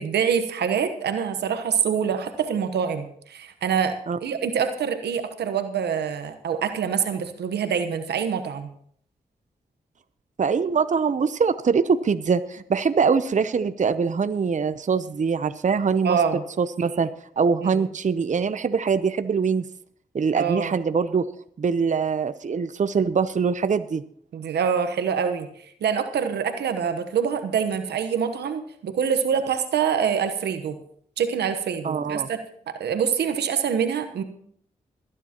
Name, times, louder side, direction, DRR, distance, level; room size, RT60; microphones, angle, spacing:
voice 1, 0.0-3.9 4.2-8.7 16.0-16.4 17.7-17.8 20.3-20.7 24.3-25.5 25.8-30.8 31.2-32.4 32.7-34.2, right 7 dB, 85° right, 8 dB, 1.1 m, -25 dB
voice 2, 10.4-16.2 16.6-17.1 17.4-19.7 20.1-21.3 21.6-24.0 31.8-32.3, right 5 dB, 45° right, 11 dB, 0.7 m, -23 dB
22.0 x 10.0 x 3.0 m, 0.64 s
supercardioid pair, 45°, 17 cm